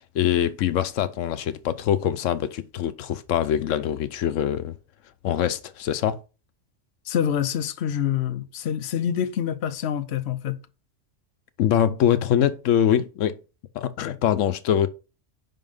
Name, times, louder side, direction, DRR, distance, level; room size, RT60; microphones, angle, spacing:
voice 1, 0.0-4.7 5.2-6.2 11.6-13.4 13.7-14.9, left 10 dB, 85° left, 1.0 m, -23 dB
voice 2, 7.1-10.6, left 9 dB, 60° left, 0.9 m, -26 dB
5.5 x 5.4 x 5.3 m
omnidirectional pair, 1.3 m